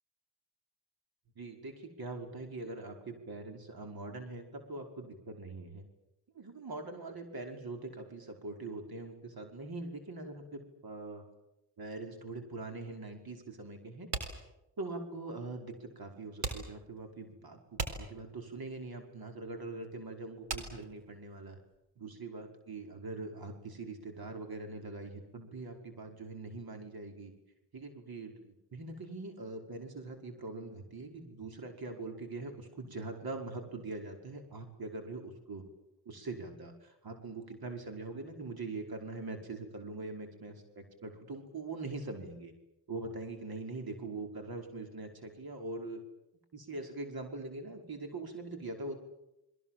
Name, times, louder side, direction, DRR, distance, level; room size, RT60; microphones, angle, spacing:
voice 1, 1.3-5.9 6.3-11.2 11.8-14.1 14.8-21.6 21.9-27.3 27.7-35.6 36.0-42.5 42.9-46.0 46.5-49.0, right 3 dB, 60° right, 5 dB, 5.2 m, -43 dB
sound 1, 14.1-21.8, right 5 dB, 80° right, 4.1 m, -41 dB
29.5 x 22.0 x 7.6 m, 0.90 s
cardioid pair, 60°, 42 cm